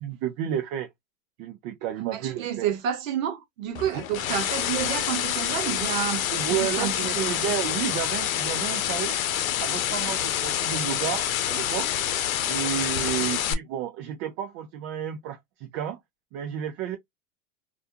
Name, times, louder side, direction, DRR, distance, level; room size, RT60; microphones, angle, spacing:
voice 1, 0.0-0.9 1.4-2.7 3.9-4.0 6.3-9.2 9.6-12.0 12.5-16.0 16.3-17.0, right 10 dB, 45° right, 0.5 m, -31 dB
voice 2, 2.1-7.4 13.2-13.3, right 10 dB, 75° right, 0.9 m, -30 dB
sound 1, 3.7-13.5, left 11 dB, 80° left, 0.6 m, -27 dB
2.5 x 2.2 x 2.6 m
supercardioid pair, 125°, 40 cm